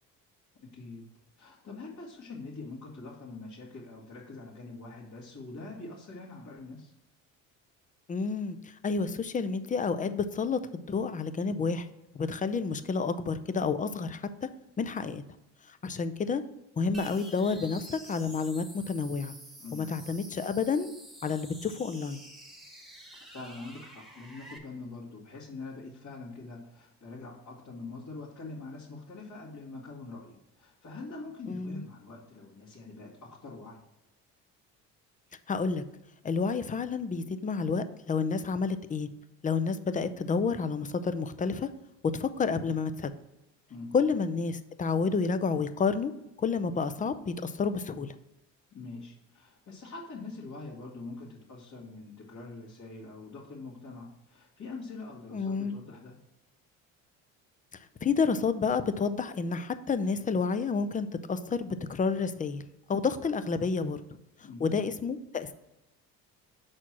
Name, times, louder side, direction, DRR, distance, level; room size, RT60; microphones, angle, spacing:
voice 1, 0.7-1.0 1.4-6.9 19.6-19.9 23.3-33.8 43.7-43.9 48.7-56.1 64.4-64.7, left 3 dB, 55° left, -8 dB, 2.2 m, -44 dB
voice 2, 8.1-11.9 12.1-14.5 14.8-15.2 15.7-16.4 16.8-19.3 19.7-20.9 21.2-22.2 31.5-31.8 35.5-35.8 36.2-39.1 39.4-41.7 42.0-43.1 43.9-46.1 46.4-48.1 55.3-55.8 58.0-62.6 62.9-64.0 64.6-65.5, left 5 dB, 25° left, 12 dB, 0.5 m, -30 dB
sound 1, 16.9-24.6, right 1 dB, ahead, 1.3 m, -49 dB
6.1 x 4.3 x 5.9 m, 0.92 s
supercardioid pair, 90°, 35 cm